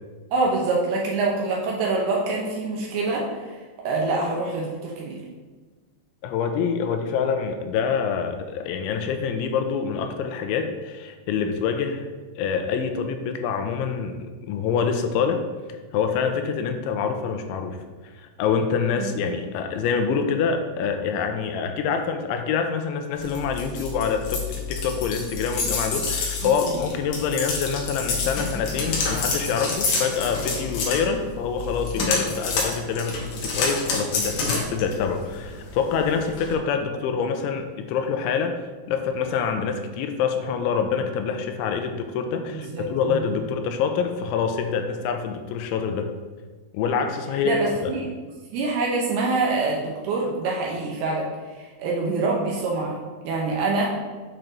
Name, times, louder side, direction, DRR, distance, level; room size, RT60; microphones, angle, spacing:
voice 1, 0.3-3.3 3.9-5.2 19.0-19.1 26.4-26.8 42.5-43.2 47.4-48.1 48.5-51.3 51.5-53.9, right 3 dB, 75° right, -2 dB, 2.5 m, -25 dB
voice 2, 6.2-12.1 12.4-15.4 15.9-17.8 18.2-24.4 24.7-38.6 38.9-46.1 46.7-48.0, left 6 dB, 85° left, 6 dB, 2.9 m, -26 dB
sound 1, 23.2-36.5, left 4 dB, 70° left, 2.0 m, -29 dB
8.0 x 4.3 x 3.9 m, 1.4 s
omnidirectional pair, 5.3 m